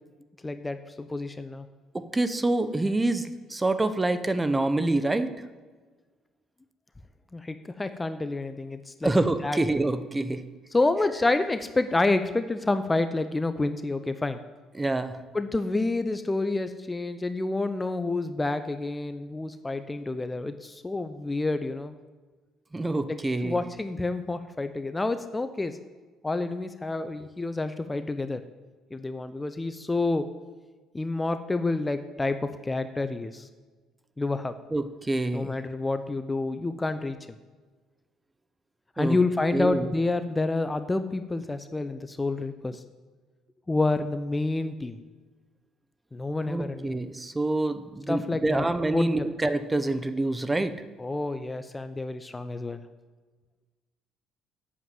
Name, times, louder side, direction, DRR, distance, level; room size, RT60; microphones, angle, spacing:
voice 1, 0.4-1.7 7.3-9.1 9.4-9.6 10.7-14.4 15.3-21.9 23.1-23.2 23.4-25.8 26.2-28.4 28.9-30.3 30.9-32.4 32.6-33.5 34.2-34.5 35.3-37.2 39.0-42.8 43.7-45.0 46.1-47.0 48.1-48.7 48.9-49.3 51.0-52.8, left 2 dB, 20° left, 10 dB, 0.7 m, -28 dB
voice 2, 1.9-5.3 9.0-10.4 14.7-15.2 22.7-23.6 34.7-35.6 39.0-39.2 39.5-39.9 46.5-50.8, right 2 dB, 20° right, 11 dB, 0.9 m, -26 dB
8.6 x 7.2 x 7.7 m, 1.4 s
hypercardioid pair, 65°, 0 cm